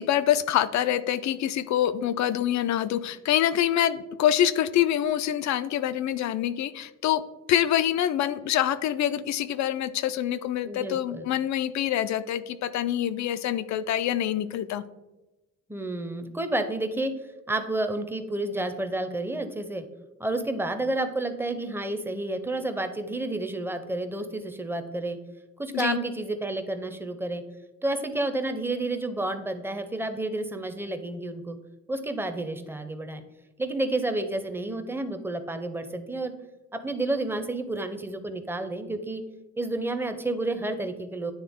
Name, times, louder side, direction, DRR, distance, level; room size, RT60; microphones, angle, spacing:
voice 1, 0.0-7.2 7.5-14.8 25.7-26.0, left 11 dB, 65° left, 13 dB, 0.5 m, -25 dB
voice 2, 10.6-11.3 15.7-17.1 17.5-19.8 20.2-25.2 25.6-27.4 27.8-31.6 31.9-33.2 33.6-36.3 36.7-39.2 39.6-41.3, right 2 dB, 5° right, 8 dB, 0.6 m, -30 dB
9.5 x 3.3 x 3.6 m, 1.0 s
cardioid pair, 90°, 30 cm